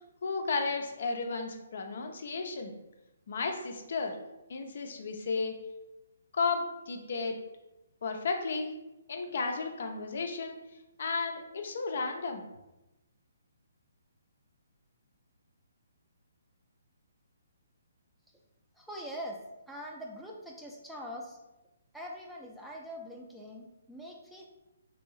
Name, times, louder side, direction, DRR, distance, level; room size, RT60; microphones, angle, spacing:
voice 1, 0.2-2.7 3.3-4.2 4.5-5.5 6.3-7.4 8.0-8.7 9.1-10.5 11.0-12.4, left 4 dB, 60° left, 4 dB, 0.4 m, -33 dB
voice 2, 18.8-19.4 19.7-21.4 21.9-24.5, equal, ahead, -2 dB, 0.4 m, -43 dB
3.0 x 2.6 x 3.1 m, 0.98 s
figure-of-eight pair, 135°, 0 cm